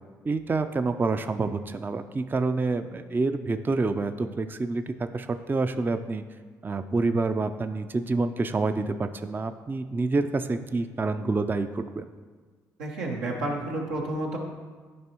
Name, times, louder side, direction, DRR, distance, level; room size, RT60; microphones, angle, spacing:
voice 1, 0.2-6.2 6.6-12.1, right 3 dB, 25° right, 10 dB, 0.4 m, -27 dB
voice 2, 12.8-14.4, right 1 dB, 90° right, -2 dB, 1.0 m, -30 dB
9.3 x 5.3 x 2.9 m, 1.5 s
hypercardioid pair, 45°, 9 cm